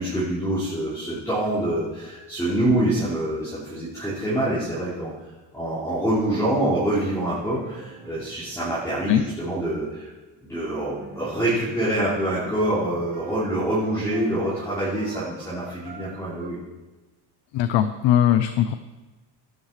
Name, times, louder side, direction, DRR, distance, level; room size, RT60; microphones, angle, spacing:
voice 1, 0.0-5.1 5.5-10.1 10.4-16.6, right 1 dB, 5° left, -13 dB, 5.1 m, -25 dB
sound 1, 7.5-9.5 10.7-16.5, right 3 dB, 20° right, 1.4 m, -43 dB
voice 2, 17.5-18.7, left 10 dB, 80° left, 10 dB, 0.8 m, -20 dB
16.5 x 13.0 x 3.3 m, 1.2 s
cardioid pair, 150°, 43 cm